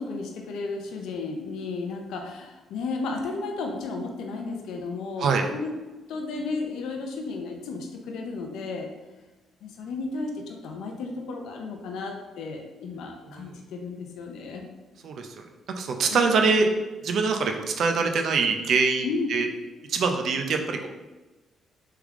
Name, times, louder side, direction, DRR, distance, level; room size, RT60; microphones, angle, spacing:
voice 1, 0.0-5.7 6.1-8.9 9.6-14.6 16.1-16.4 19.0-19.3, left 3 dB, 85° left, 2 dB, 0.5 m, -33 dB
voice 2, 13.2-13.6 15.0-15.3 15.8-16.7 17.0-19.5 19.9-20.9, right 4 dB, 65° right, 4 dB, 0.5 m, -24 dB
3.5 x 3.3 x 3.6 m, 1.2 s
cardioid pair, 90°, 0 cm